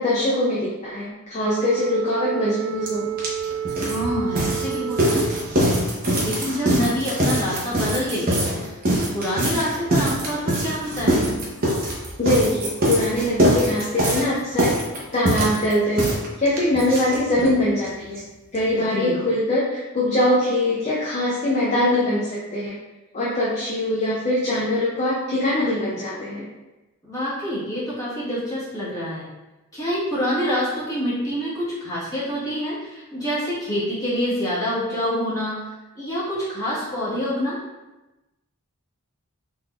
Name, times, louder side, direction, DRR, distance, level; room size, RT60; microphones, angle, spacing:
voice 1, 0.0-3.1 12.2-14.8 15.1-16.1 16.4-18.2 18.5-22.8 23.1-26.5, left 1 dB, 30° left, -5 dB, 0.5 m, -22 dB
Wind instrument woodwind instrument, 1.4-5.8, right 8 dB, 65° right, 0.3 m, -29 dB
sound 1, 2.9-3.0 3.2-17.6 17.8-17.9 18.2-18.3 18.5-18.6, right 1 dB, 40° right, 0.7 m, -23 dB
voice 2, 3.8-5.4 6.2-8.6 8.9-11.3 18.8-19.2 27.0-29.3 29.7-35.6 35.9-37.6, equal, 15° left, -10 dB, 1.4 m, -26 dB
3.8 x 3.3 x 2.4 m, 1.1 s
head